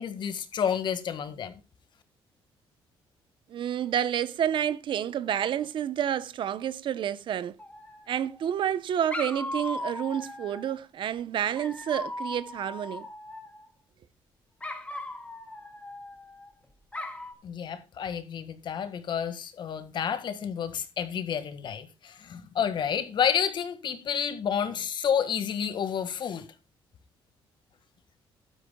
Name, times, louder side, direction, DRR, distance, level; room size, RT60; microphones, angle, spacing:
voice 1, 0.0-1.5 17.4-26.5, left 8 dB, 55° left, 1.8 m, -30 dB
voice 2, 3.5-7.5 8.1-13.1, right 9 dB, 60° right, 0.8 m, -29 dB
Dog, 7.6-8.4 9.1-10.8 11.6-13.7 14.6-16.5 16.9-17.3, left 2 dB, 15° left, 2.1 m, -38 dB
16.0 x 12.0 x 2.3 m
cardioid pair, 125°, 9 cm